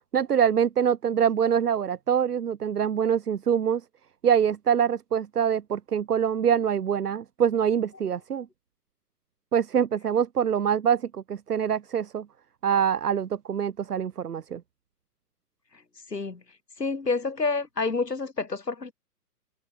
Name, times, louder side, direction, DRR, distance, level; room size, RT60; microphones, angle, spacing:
voice 1, 0.1-3.8 4.2-8.5 9.5-12.3 12.6-14.6, right 8 dB, 70° right, 1.1 m, -24 dB
voice 2, 16.1-16.4 16.8-18.9, left 4 dB, 80° left, 6.5 m, -28 dB
figure-of-eight pair, 125°, 48 cm